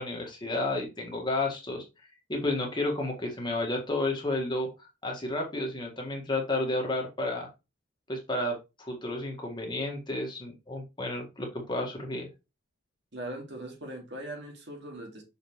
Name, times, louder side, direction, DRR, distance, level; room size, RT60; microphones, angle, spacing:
voice 1, 0.0-1.8 2.3-7.5 8.1-12.3, left 2 dB, 20° left, 1 dB, 1.6 m, -31 dB
voice 2, 13.1-15.2, right 1 dB, 55° right, 2 dB, 2.0 m, -40 dB
6.3 x 5.2 x 3.1 m, 0.26 s
head